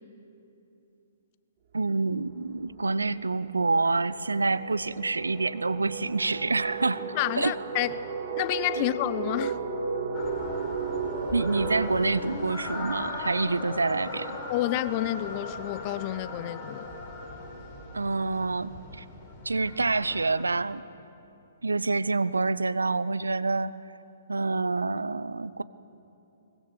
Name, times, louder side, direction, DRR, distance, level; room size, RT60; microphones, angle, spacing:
voice 1, 1.7-7.0 7.4-7.5 11.3-14.4 17.9-19.0 19.4-20.8 21.6-23.7 24.3-25.6, right 3 dB, 80° right, 16 dB, 0.6 m, -27 dB
sound 1, 1.8-2.0 2.3-13.9, right 4 dB, 45° right, 2.6 m, -35 dB
voice 2, 7.1-7.9 8.4-9.6 14.5-16.9, left 15 dB, 35° left, 16 dB, 0.7 m, -29 dB
sound 2, 10.1-20.5, left 2 dB, 20° left, 4.7 m, -38 dB
22.5 x 20.5 x 7.2 m, 2.8 s
figure-of-eight pair, 125°, 0 cm